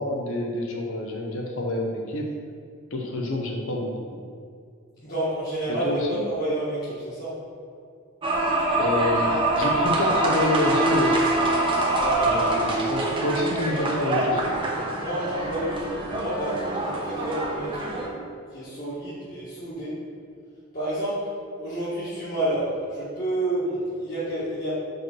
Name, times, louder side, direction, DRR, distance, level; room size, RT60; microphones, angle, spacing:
voice 1, 0.0-2.3 2.9-3.9 5.7-6.2 8.8-11.5 12.2-14.6, left 1 dB, 70° left, 0 dB, 0.9 m, -28 dB
voice 2, 5.0-5.9 6.3-7.3 11.9-12.4 15.0-17.9 18.5-19.9 20.7-21.2 21.6-24.7, right 1 dB, 40° left, -13 dB, 1.7 m, -29 dB
sound 1, 8.2-18.1, right 1 dB, 25° right, 0.8 m, -24 dB
5.3 x 4.6 x 6.1 m, 2.2 s
head